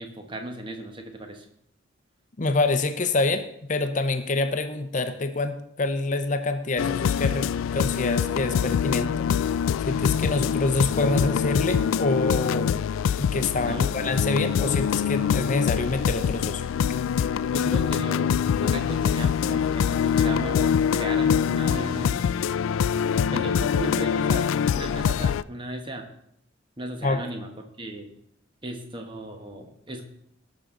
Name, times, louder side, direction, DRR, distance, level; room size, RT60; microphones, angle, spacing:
voice 1, 0.0-1.5 13.7-13.9 17.5-22.2 23.3-26.1 26.8-27.5 27.8-28.1 28.6-30.0, right 1 dB, 25° right, 4 dB, 1.2 m, -36 dB
voice 2, 2.4-9.6 9.9-12.7 13.2-16.7 17.2-17.3 27.0-27.2, left 3 dB, 40° left, 8 dB, 0.7 m, -26 dB
sound 1, 6.8-25.4, left 7 dB, 80° left, 0.3 m, -24 dB
18.0 x 6.2 x 3.8 m, 0.74 s
head